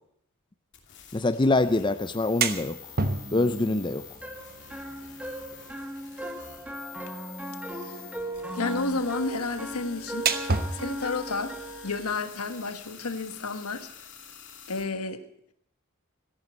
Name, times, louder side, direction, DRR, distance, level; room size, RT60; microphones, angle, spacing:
sound 1, 0.7-14.8, left 8 dB, 55° left, 2.7 m, -48 dB
voice 1, 1.1-2.8 3.3-4.0, left 2 dB, 20° left, 11 dB, 0.5 m, -24 dB
sound 2, 2.1-13.3, right 4 dB, 40° right, 1.0 m, -35 dB
sound 3, 4.2-11.9, equal, 5° right, 1.3 m, -37 dB
voice 2, 8.5-11.5 11.8-13.9 14.7-15.2, left 3 dB, 85° left, 9 dB, 1.4 m, -31 dB
13.5 x 11.5 x 8.0 m, 0.71 s
head